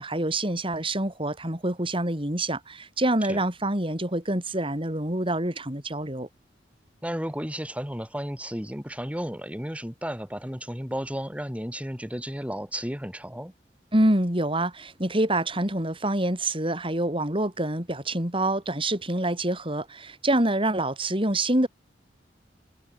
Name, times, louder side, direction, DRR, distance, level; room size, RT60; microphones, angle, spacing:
voice 1, 0.0-6.3 13.9-21.7, right 1 dB, 30° right, 6.4 m, -26 dB
voice 2, 7.0-13.5, equal, 10° right, 5.7 m, -33 dB
head